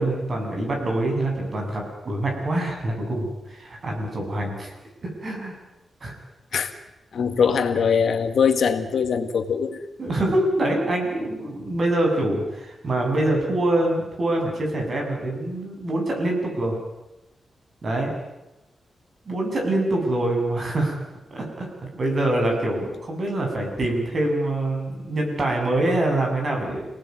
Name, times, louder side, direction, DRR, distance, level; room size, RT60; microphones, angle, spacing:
voice 1, 0.0-4.7 5.0-5.5 6.0-6.1 10.0-16.8 17.8-18.1 19.3-21.0 21.3-21.7 21.9-26.9, right 1 dB, 35° right, 1 dB, 7.7 m, -25 dB
voice 2, 7.1-9.8, left 6 dB, 65° left, 8 dB, 2.0 m, -22 dB
27.5 x 19.0 x 9.6 m, 0.95 s
wide cardioid pair, 175°, 0 cm